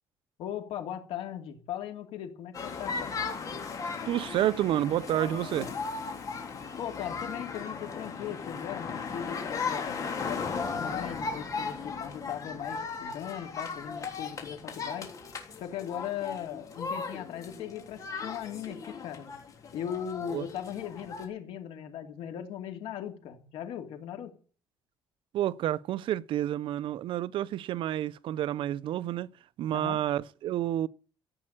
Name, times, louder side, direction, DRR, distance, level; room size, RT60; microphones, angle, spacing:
voice 1, 0.4-3.2 6.8-15.1 15.6-19.3 19.7-24.3 29.7-30.0, left 9 dB, 90° left, 2.9 m, -38 dB
sound 1, 2.5-21.3, left 5 dB, 40° left, 3.4 m, -37 dB
voice 2, 4.0-5.7 20.3-20.5 25.3-29.3 29.6-30.9, right 12 dB, 65° right, 0.6 m, -29 dB
14.5 x 8.7 x 8.7 m
cardioid pair, 155°, 9 cm